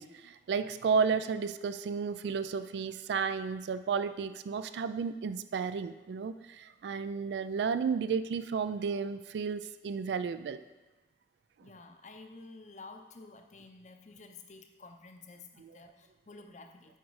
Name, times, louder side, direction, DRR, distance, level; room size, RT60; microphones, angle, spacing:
voice 1, 0.0-10.6, right 5 dB, 80° right, 11 dB, 0.3 m, -32 dB
voice 2, 11.6-17.0, left 3 dB, 40° left, 6 dB, 0.6 m, -51 dB
8.0 x 4.9 x 4.7 m, 1.2 s
head